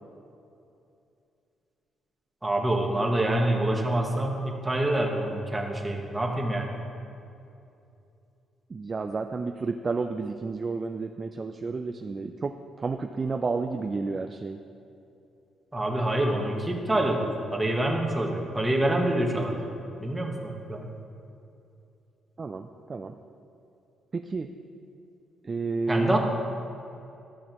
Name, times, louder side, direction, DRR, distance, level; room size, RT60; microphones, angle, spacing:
voice 1, 2.4-6.7 15.7-19.6 20.0-20.9 25.9-26.2, right 1 dB, 15° right, 1 dB, 1.2 m, -26 dB
voice 2, 8.7-14.6 22.4-23.1 24.1-24.5 25.4-26.2, right 4 dB, 35° right, 6 dB, 0.3 m, -31 dB
13.0 x 6.3 x 3.0 m, 2.7 s
cardioid pair, 90°, 0 cm